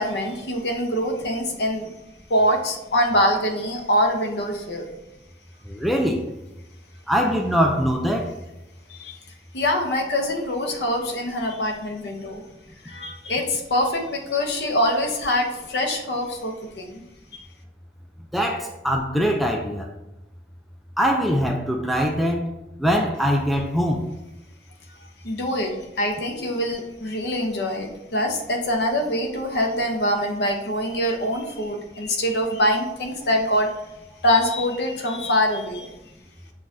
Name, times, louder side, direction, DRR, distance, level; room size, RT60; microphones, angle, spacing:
voice 1, 0.0-1.9 2.3-4.9 8.9-9.2 9.5-12.4 12.8-17.0 17.3-17.4 25.2-33.7 34.2-35.9, equal, 70° left, 3 dB, 0.7 m, -24 dB
voice 2, 5.7-6.2 7.1-8.4 18.3-19.9 21.0-22.5 22.8-24.1, equal, ahead, 1 dB, 0.3 m, -22 dB
7.1 x 2.4 x 2.6 m, 0.95 s
head